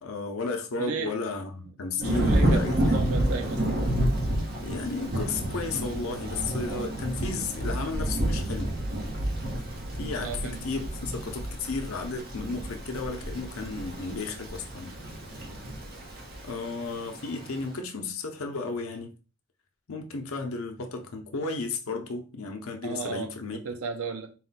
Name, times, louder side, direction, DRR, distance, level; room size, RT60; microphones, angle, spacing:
voice 1, 0.0-3.0 4.6-8.8 10.0-14.9 16.4-19.1 19.9-23.6, left 3 dB, 80° left, 0.7 m, -33 dB
voice 2, 0.8-1.1 2.0-2.6 2.9-3.7 10.2-10.6 22.8-24.3, right 5 dB, 85° right, 0.6 m, -34 dB
Thunder / Rain, 2.0-17.6, right 1 dB, 45° right, 0.9 m, -30 dB
4.1 x 2.2 x 4.0 m
head